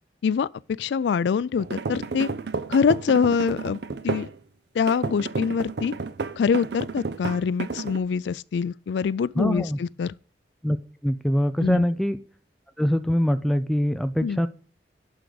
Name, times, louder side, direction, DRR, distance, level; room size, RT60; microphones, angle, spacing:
voice 1, 0.2-2.3 2.7-4.3 4.7-6.0 6.4-10.1 11.6-11.8 14.2-14.4, left 6 dB, 80° left, 0.3 m, -24 dB
sound 1, 1.6-4.4 4.9-8.0, right 4 dB, 70° right, 0.6 m, -32 dB
voice 2, 9.4-9.8 10.6-10.8 11.0-12.2 12.8-14.5, equal, ahead, 0.4 m, -23 dB
11.0 x 4.8 x 4.0 m
head